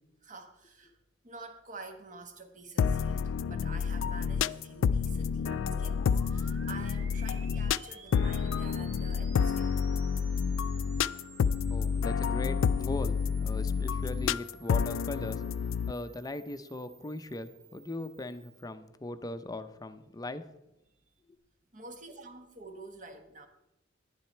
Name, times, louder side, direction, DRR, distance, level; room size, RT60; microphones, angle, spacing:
voice 1, 0.2-1.0 1.2-6.0 6.3-9.8 21.7-23.5, right 3 dB, 40° right, 7 dB, 1.3 m, -48 dB
sound 1, 2.8-15.9, left 6 dB, 70° left, 0.3 m, -29 dB
sound 2, 5.4-18.7, right 5 dB, 75° right, 1.2 m, -54 dB
voice 2, 11.7-15.4 15.9-20.5, left 2 dB, 20° left, 11 dB, 0.6 m, -39 dB
10.5 x 10.5 x 4.4 m, 0.90 s
head